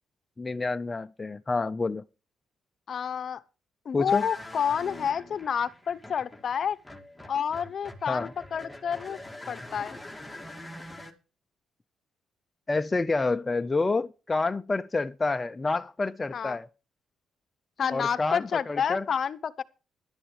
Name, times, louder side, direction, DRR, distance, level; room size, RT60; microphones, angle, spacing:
voice 1, 0.4-2.0 3.9-4.3 8.1-8.3 12.7-16.7 17.9-19.1, left 3 dB, 25° left, 0.5 m, -28 dB
voice 2, 2.9-3.4 3.8-6.8 7.3-9.2 9.5-10.0 16.3-16.6 17.8-19.6, left 7 dB, 55° left, 0.8 m, -29 dB
sound 1, 4.1-11.1, left 1 dB, 5° left, 2.1 m, -44 dB
16.0 x 11.5 x 3.3 m
cardioid pair, 90°, 0 cm